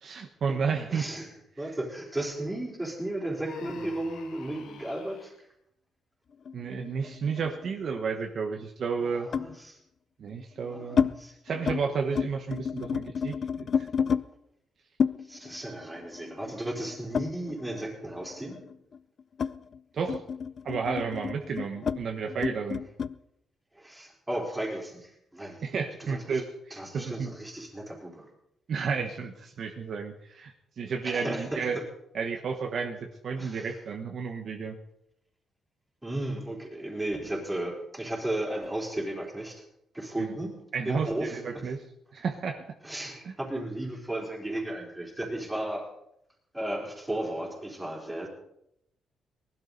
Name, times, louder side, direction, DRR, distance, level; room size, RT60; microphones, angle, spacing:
voice 1, 0.0-1.0 1.6-1.7 6.5-9.3 10.2-11.1 11.4-13.9 19.9-20.2 20.6-22.8 25.6-27.3 28.7-31.8 32.1-33.0 33.2-34.8 40.2-40.3 40.7-41.8 42.1-42.6 43.2-43.3, right 5 dB, 50° right, 3 dB, 1.2 m, -32 dB
voice 2, 0.9-1.3 1.6-5.3 9.0-9.8 10.7-11.3 15.3-18.6 23.8-25.6 26.0-26.4 26.7-28.3 31.0-31.7 33.4-33.7 36.0-39.6 39.9-40.5 40.9-41.4 42.8-45.9 46.5-48.3, right 1 dB, 10° right, -1 dB, 3.9 m, -34 dB
Human voice, 3.4-5.3, left 6 dB, 85° left, 1.6 m, -47 dB
sound 1, 6.5-8.0 9.3-9.6 10.3-11.1 11.5-11.8 12.1-14.2 15.0-17.9 18.2-23.2, left 6 dB, 45° left, 0.5 m, -31 dB
19.0 x 12.0 x 4.1 m, 0.76 s
cardioid pair, 135°, 0 cm